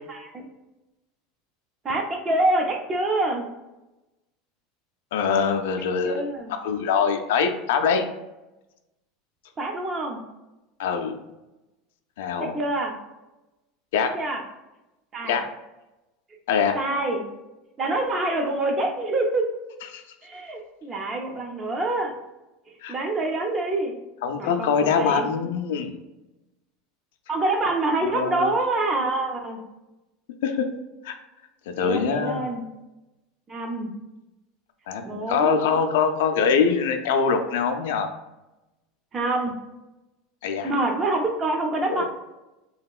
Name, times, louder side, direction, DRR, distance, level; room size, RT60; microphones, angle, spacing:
voice 1, 0.1-0.4 1.8-3.5 6.0-6.5 9.6-10.2 12.4-12.9 14.0-14.4 15.1-15.4 16.7-17.3 17.8-19.5 20.2-22.2 22.7-24.0 24.4-25.3 27.3-29.6 31.8-32.6 33.5-33.9 35.0-35.6 39.1-39.5 40.6-42.0, right 2 dB, 30° right, 2 dB, 0.5 m, -26 dB
voice 2, 5.1-6.2 6.6-8.0 10.8-11.1 12.2-12.6 13.9-14.1 15.2-15.5 16.5-16.8 19.9-20.0 22.8-22.9 24.2-26.0 28.0-28.5 30.4-30.7 31.0-31.2 31.7-32.5 34.9-38.1 40.4-40.7 41.9-42.0, left 6 dB, 80° left, 6 dB, 0.3 m, -23 dB
2.9 x 2.7 x 2.3 m, 1.0 s
supercardioid pair, 115°, 0 cm